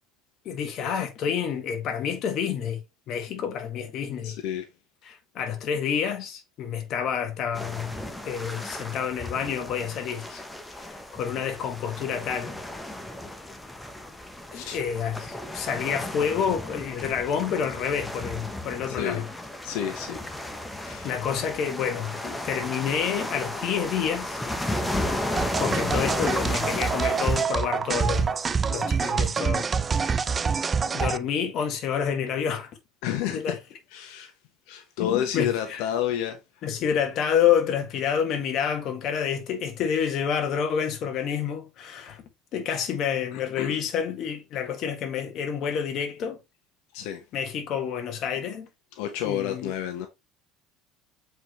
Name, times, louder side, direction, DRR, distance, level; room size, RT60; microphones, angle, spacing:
voice 1, 0.5-2.8 3.1-4.4 5.1-7.9 8.3-10.4 10.8-12.6 14.5-19.3 21.0-24.4 25.6-29.7 30.0-30.3 30.9-32.7 33.3-33.6 35.0-35.8 36.6-42.2 42.5-46.4 47.3-48.7 49.2-49.7, left 8 dB, 50° left, 1.8 m, -28 dB
voice 2, 4.2-4.6 14.5-14.8 18.9-19.2 19.6-20.2 20.8-21.1 33.0-33.6 33.9-34.3 34.7-36.4 43.3-43.7 46.9-47.2 49.0-50.1, left 10 dB, 75° left, 1.2 m, -30 dB
sound 1, 7.5-27.4, left 1 dB, 5° left, 1.0 m, -34 dB
sound 2, 25.4-31.2, right 5 dB, 20° right, 0.4 m, -26 dB
7.6 x 4.8 x 3.2 m
cardioid pair, 145°, 0 cm